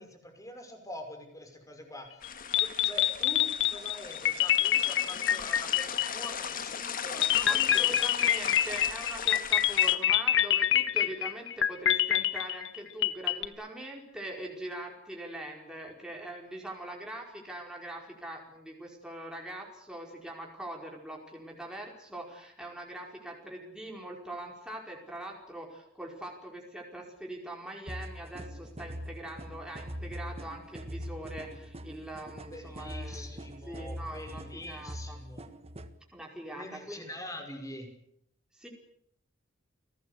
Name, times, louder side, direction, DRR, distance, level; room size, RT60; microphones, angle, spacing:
voice 1, 0.0-2.3 2.6-7.9 32.5-35.5 36.6-37.9, left 1 dB, 15° left, 6 dB, 5.7 m, -45 dB
sound 1, 2.2-2.3 2.5-6.5 7.2-13.5, left 11 dB, 60° left, 1.2 m, -26 dB
sound 2, 2.2-10.0, left 7 dB, 45° left, 1.9 m, -38 dB
voice 2, 7.4-35.2 36.1-37.1 38.5-38.7, right 1 dB, 5° right, -1 dB, 5.1 m, -42 dB
sound 3, 27.9-35.9, equal, 30° right, 1.6 m, -42 dB
29.5 x 19.0 x 8.3 m, 0.70 s
head